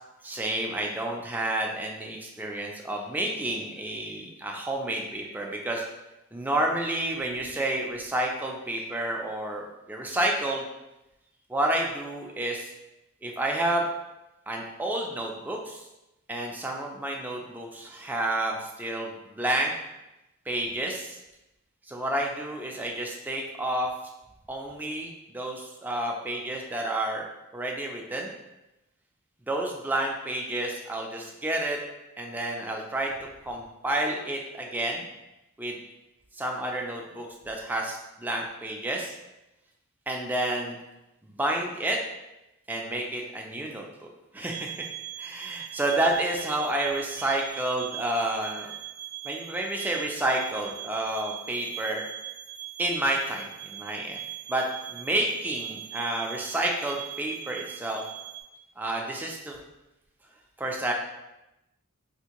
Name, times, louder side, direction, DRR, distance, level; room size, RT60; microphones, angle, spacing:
voice 1, 0.2-5.8 6.3-10.6 11.5-12.7 13.2-13.9 14.5-15.9 16.3-19.7 20.5-21.2 21.9-23.9 24.5-27.2 27.5-28.3 29.5-31.8 32.2-33.1 33.5-35.1 35.6-35.8 36.3-39.1 40.1-40.8 41.2-42.0 42.7-44.1 44.3-44.8 45.2-48.8 49.2-52.0 52.8-54.2 54.5-58.0 58.8-59.6 60.6-60.9, right 1 dB, 10° right, 0 dB, 0.3 m, -30 dB
sound 1, 44.5-58.4, right 13 dB, 85° right, 0.5 m, -40 dB
3.5 x 2.5 x 2.9 m, 0.96 s
head